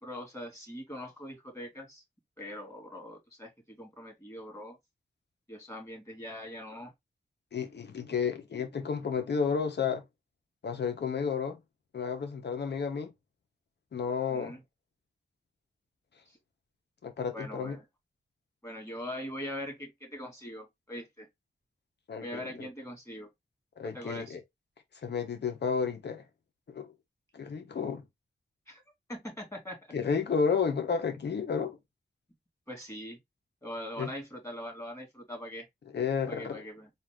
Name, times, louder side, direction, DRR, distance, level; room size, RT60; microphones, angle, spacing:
voice 1, 0.0-2.0 2.4-4.8 5.5-6.9 14.3-14.6 16.3-16.4 17.3-17.8 18.6-21.3 22.2-23.3 23.8-24.4 28.7-28.8 29.1-29.8 32.7-33.2 33.6-35.6 36.3-36.9, equal, 15° left, 2.9 m, -42 dB
voice 2, 7.5-10.0 10.6-11.6 11.9-13.1 13.9-14.6 17.0-17.8 22.1-22.2 22.6-22.7 23.8-24.4 25.0-26.2 26.7-26.9 27.3-28.0 29.9-31.8 34.0-34.1 35.9-36.6, left 6 dB, 75° left, 1.1 m, -31 dB
4.1 x 2.7 x 3.7 m
cardioid pair, 65°, 18 cm